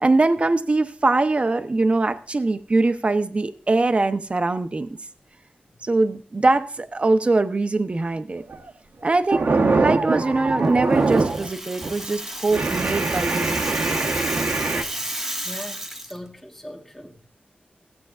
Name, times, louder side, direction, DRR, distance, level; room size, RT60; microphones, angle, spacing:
voice 1, 0.0-5.0 5.8-8.4 9.0-9.5 9.7-13.8, right 2 dB, 35° right, 0.8 m, -22 dB
sound 1, 8.4-8.7 9.0-11.5 11.8-12.0 12.5-14.8, right 3 dB, 70° right, 1.1 m, -23 dB
Rattle (instrument), 10.9-16.2, right 1 dB, 10° right, 1.0 m, -32 dB
voice 2, 15.4-17.3, equal, 5° left, 1.5 m, -40 dB
16.0 x 8.2 x 2.5 m
wide cardioid pair, 80°, 3 cm